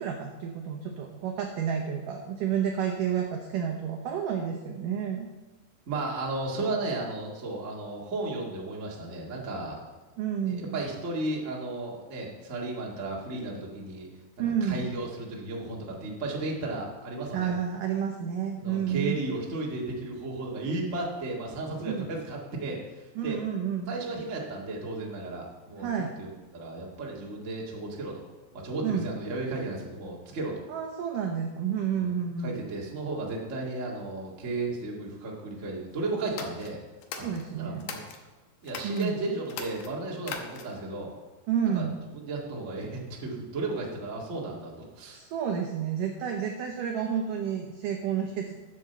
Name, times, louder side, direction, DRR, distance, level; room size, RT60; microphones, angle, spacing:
voice 1, 0.0-5.3 10.2-10.8 14.4-14.9 17.3-19.2 21.9-22.1 23.2-24.0 25.8-26.1 28.8-29.1 30.7-32.5 37.2-37.9 38.8-39.1 41.5-42.0 45.1-48.5, right 8 dB, 90° right, 3 dB, 1.8 m, -30 dB
voice 2, 5.9-9.8 10.5-14.1 14.4-17.5 18.6-23.4 23.9-28.3 28.5-30.6 31.9-32.1 32.4-36.8 37.2-37.3 37.6-38.0 38.6-41.1 41.7-41.9 42.1-45.2, right 2 dB, 55° right, -2 dB, 0.8 m, -34 dB
sound 1, 36.2-38.2 38.6-39.1 39.4-40.9, left 6 dB, 90° left, 1.7 m, -40 dB
9.6 x 7.6 x 6.8 m, 1.2 s
omnidirectional pair, 5.1 m